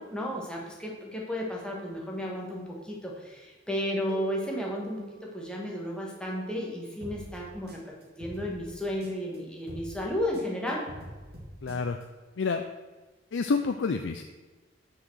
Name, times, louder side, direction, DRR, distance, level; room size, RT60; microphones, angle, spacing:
voice 1, 0.0-10.9, equal, 5° left, -3 dB, 1.6 m, -33 dB
sound 1, 4.1-8.6, right 6 dB, 25° right, 1.4 m, -49 dB
sound 2, 7.0-9.4 9.7-12.0, equal, 55° right, 2.0 m, -45 dB
voice 2, 11.6-12.0 12.4-12.6 13.3-14.2, left 4 dB, 75° left, 6 dB, 0.5 m, -28 dB
6.3 x 5.8 x 6.3 m, 1.3 s
head